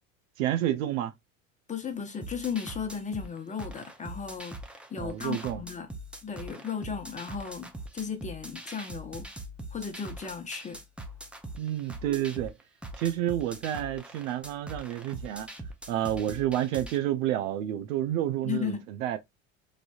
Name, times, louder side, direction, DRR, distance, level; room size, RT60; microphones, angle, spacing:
voice 1, 0.4-1.1 5.0-5.6 11.6-12.6 13.0-15.5 15.9-19.2, right 12 dB, 80° right, 0.5 m, -29 dB
voice 2, 1.7-5.9 6.2-9.3 9.7-10.8 18.4-18.8, left 6 dB, 20° left, 0.8 m, -35 dB
sound 1, 2.2-17.0, right 1 dB, 5° right, 0.5 m, -42 dB
3.2 x 2.6 x 2.3 m
supercardioid pair, 90°, 39 cm